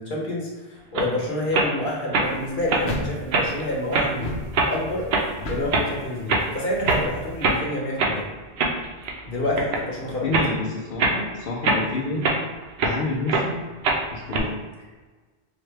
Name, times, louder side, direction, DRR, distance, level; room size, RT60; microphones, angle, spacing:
voice 1, 0.0-4.3 4.7-5.1 5.5-8.3 9.2-10.2, left 1 dB, 55° left, -3 dB, 1.1 m, -28 dB
sound 1, 1.0-1.1 1.5-1.7 2.1-2.3 2.7-2.8 3.3-3.6 3.9-4.1 4.5-4.7 5.1-5.3 5.7-5.9 6.3-6.5 6.8-7.1 7.4-7.6 8.0-8.2 8.6-9.2 9.6-9.9 10.3-10.5 11.0-11.2 11.6-13.0 13.3-13.5 13.8-14.4, right 3 dB, 80° right, 0.9 m, -22 dB
sound 2, 2.2-7.6, equal, 90° left, 0.9 m, -35 dB
voice 2, 10.2-12.3 12.8-13.6 14.1-14.6, left 2 dB, 70° left, -4 dB, 0.8 m, -28 dB
4.6 x 2.2 x 3.2 m, 1.3 s
omnidirectional pair, 1.1 m